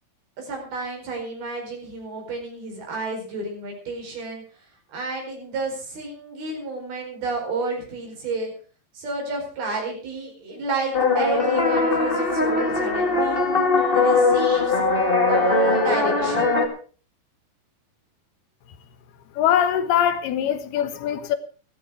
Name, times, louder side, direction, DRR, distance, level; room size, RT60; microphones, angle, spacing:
voice 1, 0.4-4.4 4.9-8.5 8.9-13.4 13.9-14.8 15.3-16.5, right 3 dB, 75° right, 6.6 m, -30 dB
sound 1, 10.9-16.7, left 3 dB, 25° left, 1.4 m, -20 dB
voice 2, 19.4-21.4, left 9 dB, 85° left, 3.2 m, -22 dB
15.0 x 13.5 x 4.8 m
omnidirectional pair, 4.4 m